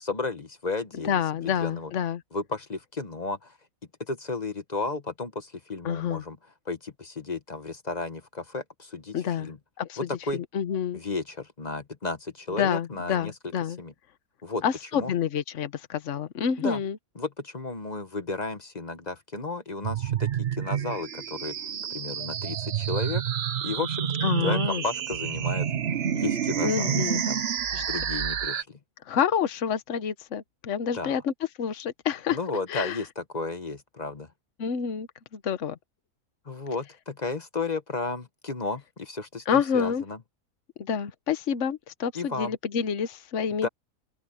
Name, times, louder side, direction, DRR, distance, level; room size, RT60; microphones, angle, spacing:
voice 1, 0.0-1.9 2.3-3.5 4.1-6.4 6.7-9.6 10.0-10.4 10.9-13.3 13.8-13.9 14.4-14.6 14.9-15.1 16.6-16.8 17.2-20.3 20.6-21.5 21.9-23.2 23.6-24.1 24.4-25.7 26.1-27.4 27.8-28.8 30.9-31.2 32.3-34.3 36.5-40.2 42.1-42.5 43.6-43.7, left 3 dB, 30° left, 1.1 m, -33 dB
voice 2, 1.0-2.2 5.8-6.2 9.1-9.5 9.8-10.0 10.3-11.0 12.6-13.8 14.6-17.0 24.2-24.8 26.6-27.2 27.7-27.8 29.1-31.3 31.6-32.4 32.7-33.0 34.6-35.8 39.5-40.0 40.8-43.7, left 7 dB, 50° left, 1.3 m, -28 dB
sound 1, 19.8-28.6, right 9 dB, 50° right, 0.8 m, -29 dB
open air
omnidirectional pair, 1.7 m